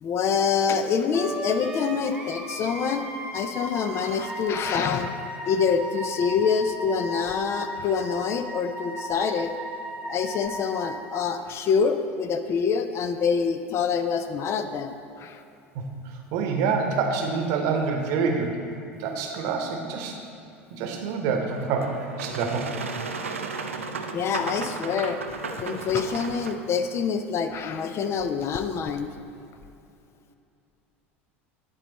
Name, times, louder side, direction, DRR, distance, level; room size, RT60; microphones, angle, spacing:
voice 1, 0.0-3.1 3.3-5.2 5.5-9.5 10.1-15.4 24.1-25.2 25.6-29.1, left 6 dB, 40° left, 8 dB, 0.5 m, -26 dB
Wind instrument woodwind instrument, 1.1-11.0, right 1 dB, 10° right, 1.1 m, -36 dB
voice 2, 15.7-18.7 18.9-20.2 20.7-22.9, right 5 dB, 55° right, 3 dB, 0.9 m, -27 dB
Boat Water vehicle, 21.5-26.5, right 4 dB, 85° right, 0.4 m, -34 dB
10.5 x 4.0 x 4.0 m, 2.7 s
hypercardioid pair, 75°, 7 cm